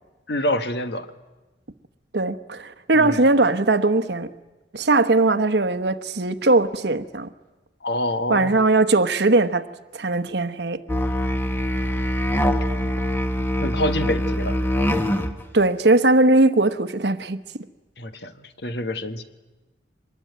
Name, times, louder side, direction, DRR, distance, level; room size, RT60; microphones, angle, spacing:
voice 1, 0.3-1.1 2.9-3.2 7.8-8.5 13.6-14.6 18.0-19.2, left 1 dB, 60° left, 1.4 m, -26 dB
voice 2, 2.1-4.3 4.7-7.3 8.3-9.7 9.9-10.8 15.5-17.4, right 2 dB, 65° right, 1.1 m, -19 dB
Musical instrument, 10.9-15.4, left 1 dB, 10° left, 1.3 m, -23 dB
24.5 x 20.5 x 9.3 m
head